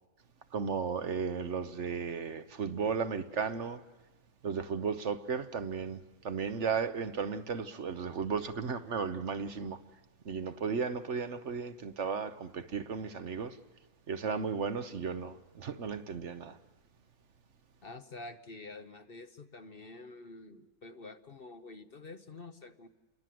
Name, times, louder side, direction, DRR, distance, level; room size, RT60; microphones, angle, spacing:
voice 1, 0.5-3.8 4.4-9.8 10.2-13.6 14.1-16.6, right 6 dB, 55° right, 1.2 m, -35 dB
voice 2, 17.8-22.9, left 3 dB, 45° left, 1.1 m, -48 dB
29.0 x 22.5 x 7.7 m
omnidirectional pair, 1.5 m